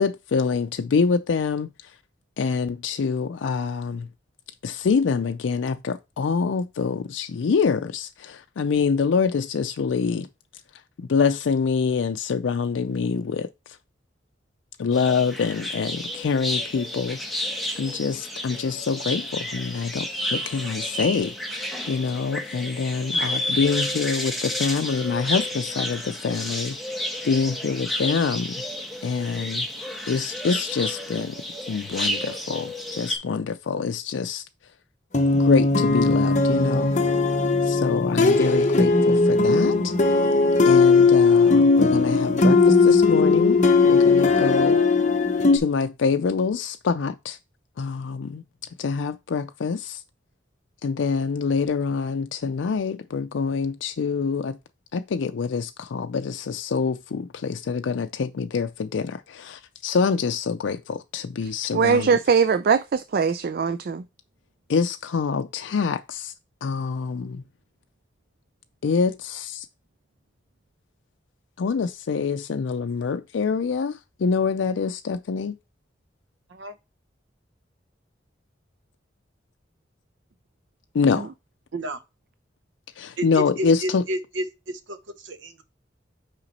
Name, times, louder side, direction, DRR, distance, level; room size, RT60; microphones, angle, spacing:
voice 1, 0.0-1.7 2.4-4.1 4.6-10.3 11.0-13.5 14.8-17.4 17.8-28.5 29.0-29.7 30.1-31.4 31.7-34.4 35.3-36.9 37.6-39.9 40.7-43.6 43.8-44.8 45.5-47.4 47.8-48.4 48.8-50.0 50.8-54.6 54.9-62.1 64.7-66.3 66.6-67.4 68.8-69.7 71.6-75.6 80.9-81.3 83.0-84.0, left 5 dB, 85° left, 0.4 m, -25 dB
sound 1, 14.9-33.2, left 1 dB, ahead, 1.1 m, -31 dB
sound 2, 35.1-45.6, left 3 dB, 40° left, 0.8 m, -18 dB
voice 2, 61.7-64.0 81.2-81.3, right 6 dB, 55° right, 0.4 m, -21 dB
voice 3, 83.6-85.0 85.2-85.6, right 1 dB, 85° right, 0.8 m, -31 dB
5.9 x 5.0 x 4.1 m
head